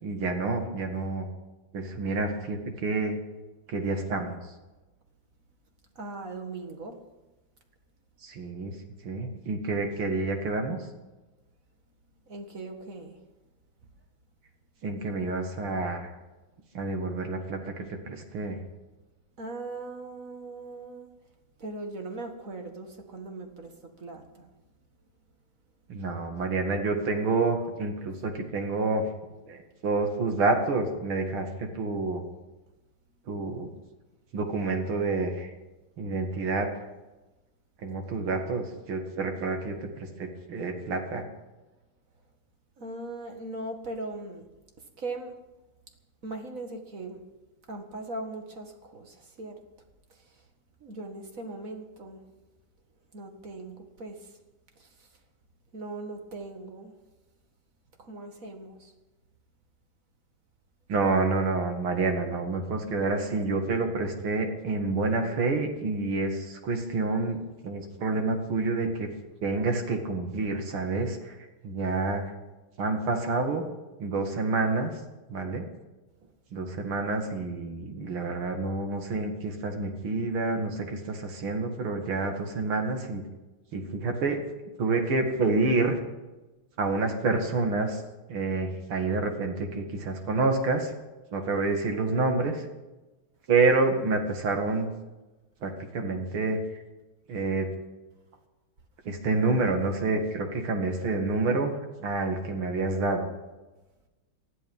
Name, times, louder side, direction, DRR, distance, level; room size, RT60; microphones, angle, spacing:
voice 1, 0.0-1.3 1.7-3.2 3.7-4.4 8.2-8.7 9.0-10.8 14.8-16.1 16.7-17.6 18.1-18.6 25.9-29.0 29.5-32.2 33.3-33.7 34.3-35.5 36.0-36.7 37.8-41.2 60.9-67.4 67.6-69.1 69.4-71.3 71.6-72.3 72.8-73.6 74.0-74.9 75.3-75.6 76.5-83.2 83.7-84.4 84.8-86.0 86.8-88.0 88.3-90.9 91.3-92.6 93.5-94.9 95.6-96.6 97.3-97.7 99.1-101.7 102.0-103.3, right 3 dB, 85° right, 4 dB, 3.0 m, -28 dB
voice 2, 6.0-7.0 12.3-13.2 19.4-21.1 21.6-24.5 42.8-44.5 45.0-45.3 46.2-47.2 47.7-49.6 50.8-52.2 53.1-54.3 54.8-55.1 55.7-56.9 58.0-58.9, right 2 dB, 40° right, 4 dB, 2.1 m, -39 dB
19.5 x 12.5 x 5.5 m, 1.1 s
omnidirectional pair, 2.3 m